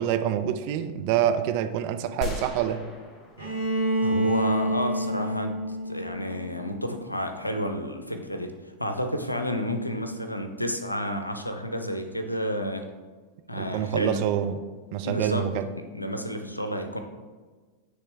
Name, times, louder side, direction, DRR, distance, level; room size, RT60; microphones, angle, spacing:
voice 1, 0.0-2.8 13.6-14.6 14.9-15.6, right 10 dB, 45° right, 8 dB, 0.4 m, -26 dB
sound 1, 2.2-4.5, left 4 dB, 25° left, 0.9 m, -38 dB
Bowed string instrument, 3.4-7.2, right 1 dB, 90° right, 1.4 m, -28 dB
voice 2, 4.0-8.5 8.8-12.8 13.5-14.2 15.0-15.5 15.9-17.0, equal, 85° left, 6 dB, 0.5 m, -30 dB
9.5 x 3.2 x 3.4 m, 1.4 s
figure-of-eight pair, 90°, 0 cm